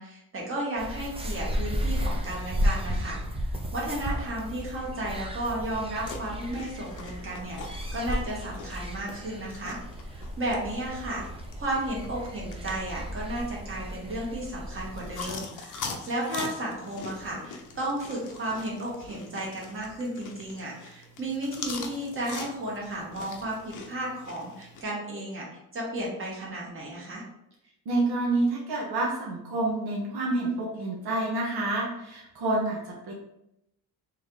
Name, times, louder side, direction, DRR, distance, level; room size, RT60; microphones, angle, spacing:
voice 1, 0.0-3.2 3.7-9.8 10.1-11.2 11.6-25.4 25.7-27.2, right 1 dB, 35° right, -5 dB, 1.4 m, -33 dB
sound 1, 0.8-15.3, equal, 15° right, 0.5 m, -34 dB
sound 2, 6.1-24.8, left 4 dB, 50° left, 0.7 m, -43 dB
voice 2, 27.9-33.1, right 2 dB, 75° right, -3 dB, 1.0 m, -28 dB
3.2 x 2.9 x 3.8 m, 0.82 s
cardioid pair, 120°, 39 cm